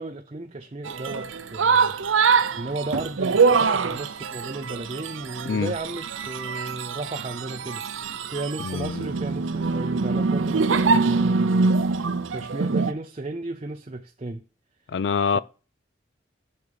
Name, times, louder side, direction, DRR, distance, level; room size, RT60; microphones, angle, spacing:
voice 1, 0.0-2.0 2.3-14.4 15.3-15.4, right 2 dB, 30° right, 0.6 m, -34 dB
sound 1, 0.8-12.9, right 4 dB, 80° right, 0.6 m, -24 dB
voice 2, 8.6-9.1 14.9-15.4, left 6 dB, 60° left, 0.4 m, -25 dB
6.8 x 6.5 x 6.8 m
head